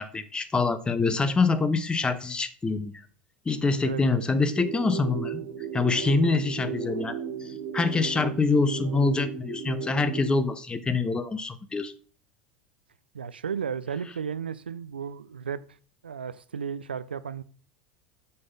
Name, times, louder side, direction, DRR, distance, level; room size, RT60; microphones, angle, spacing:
voice 1, 0.0-2.9 3.5-5.4 5.7-11.9, left 3 dB, 15° left, 0.9 m, -25 dB
voice 2, 3.8-4.3 6.3-6.4 13.1-15.6 16.0-17.4, right 7 dB, 80° right, 0.5 m, -34 dB
sound 1, 4.4-10.4, right 7 dB, 60° right, 1.8 m, -35 dB
6.9 x 6.8 x 5.3 m
figure-of-eight pair, 75°, 5 cm